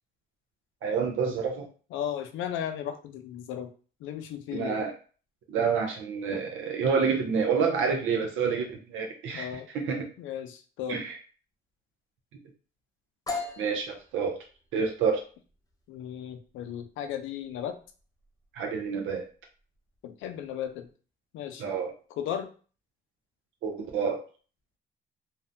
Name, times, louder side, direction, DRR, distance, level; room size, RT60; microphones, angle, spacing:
voice 1, 0.8-1.7 4.5-4.9 5.5-9.5 9.8-10.1 10.9-11.2 13.6-14.4 14.7-15.2 18.6-19.2 21.6-21.9 23.6-24.2, right 5 dB, 85° right, 2 dB, 0.6 m, -28 dB
voice 2, 1.9-3.7 4.0-4.8 6.3-6.4 9.3-9.7 10.2-11.0 15.9-17.8 20.0-20.9 21.3-21.6 22.2-22.5, left 9 dB, 85° left, 8 dB, 0.4 m, -35 dB
sound 1, 13.3-20.9, left 3 dB, 20° left, 0.5 m, -42 dB
2.6 x 2.1 x 2.5 m, 0.38 s
cardioid pair, 90°, 20 cm